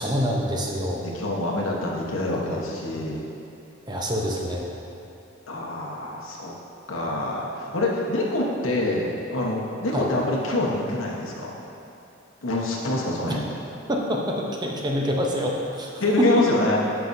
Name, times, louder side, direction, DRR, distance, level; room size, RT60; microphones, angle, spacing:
voice 1, 0.0-1.0 2.5-2.6 3.9-4.7 9.9-10.0 13.9-15.9 16.2-16.5, equal, 20° right, -1 dB, 0.7 m, -25 dB
voice 2, 1.0-3.3 5.5-6.5 6.9-11.5 12.4-13.6 16.0-16.8, left 2 dB, 85° left, -3 dB, 1.1 m, -26 dB
10.5 x 5.9 x 2.6 m, 2.9 s
head